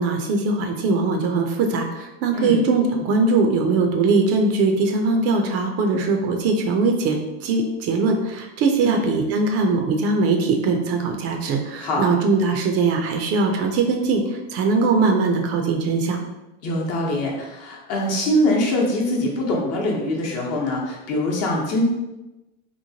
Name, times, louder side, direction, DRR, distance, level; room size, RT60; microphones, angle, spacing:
voice 1, 0.0-14.2 14.5-16.2, right 3 dB, 45° right, 3 dB, 0.5 m, -21 dB
voice 2, 16.6-21.8, left 1 dB, 50° left, -2 dB, 0.9 m, -23 dB
3.0 x 2.1 x 2.7 m, 1.0 s
supercardioid pair, 100°, 33 cm